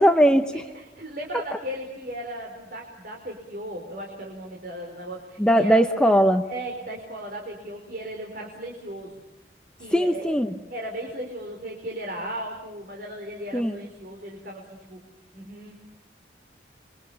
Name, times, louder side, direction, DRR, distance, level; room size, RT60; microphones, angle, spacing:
voice 1, 0.0-0.6 5.4-6.4 9.9-10.5 13.5-13.7, equal, 5° left, 6 dB, 0.9 m, -19 dB
voice 2, 0.7-5.8 6.5-9.1 9.8-10.4 10.7-15.0 15.3-15.9, right 1 dB, 55° right, 0 dB, 4.6 m, -36 dB
29.0 x 25.0 x 7.0 m, 1.0 s
head